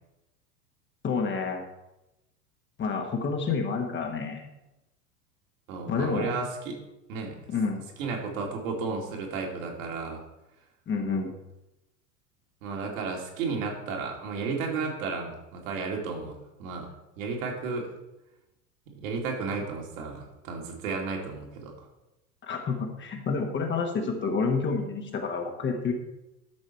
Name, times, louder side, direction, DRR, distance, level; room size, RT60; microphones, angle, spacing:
voice 1, 1.0-1.6 2.8-4.4 5.9-6.3 7.5-7.9 10.9-11.3 22.4-25.9, left 4 dB, 25° left, 3 dB, 1.4 m, -29 dB
voice 2, 5.7-6.8 7.1-7.4 8.0-10.2 12.6-16.9 17.2-17.9 19.0-21.7, right 4 dB, 55° right, 0 dB, 2.6 m, -33 dB
12.0 x 6.4 x 4.5 m, 0.95 s
figure-of-eight pair, 85°, 47 cm